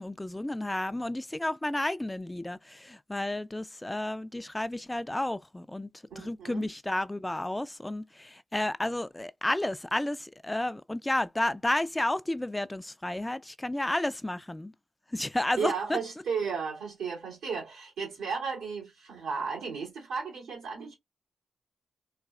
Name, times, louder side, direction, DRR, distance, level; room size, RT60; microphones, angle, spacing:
voice 1, 0.0-5.9 6.2-14.7 15.1-16.0, left 1 dB, 15° left, 0.3 m, -31 dB
voice 2, 6.1-6.7 15.6-20.9, right 5 dB, 85° right, 2.5 m, -34 dB
4.1 x 2.3 x 2.3 m
supercardioid pair, 40°, 0 cm